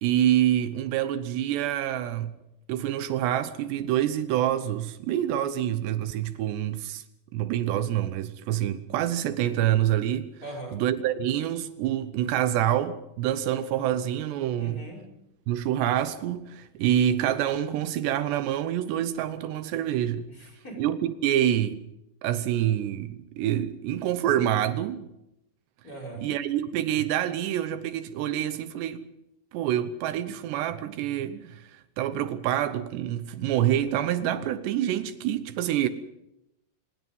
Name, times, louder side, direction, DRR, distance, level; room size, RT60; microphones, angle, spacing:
voice 1, 0.0-2.3 2.7-7.0 7.3-10.3 10.7-14.8 15.5-20.3 20.8-21.8 22.2-25.1 26.2-29.0 29.5-35.9, right 11 dB, 80° right, 3.1 m, -27 dB
voice 2, 10.4-10.8 14.6-15.0 20.3-20.8 25.8-26.3, right 1 dB, 20° left, 5.8 m, -40 dB
25.5 x 20.5 x 5.5 m
omnidirectional pair, 4.9 m